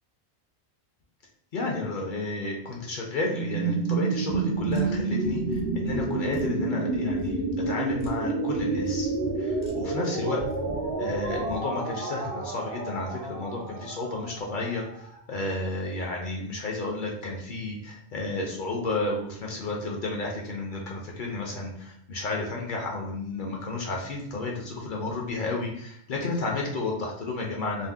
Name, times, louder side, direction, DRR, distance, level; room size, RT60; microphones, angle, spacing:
voice 1, 1.5-9.1 9.4-10.4 11.0-27.9, left 2 dB, 55° left, -1 dB, 0.6 m, -32 dB
sound 1, 3.3-15.1, right 3 dB, 75° right, 0.8 m, -29 dB
sound 2, 4.3-11.6, left 3 dB, 15° left, 0.4 m, -41 dB
2.6 x 2.0 x 3.3 m, 0.70 s
omnidirectional pair, 1.1 m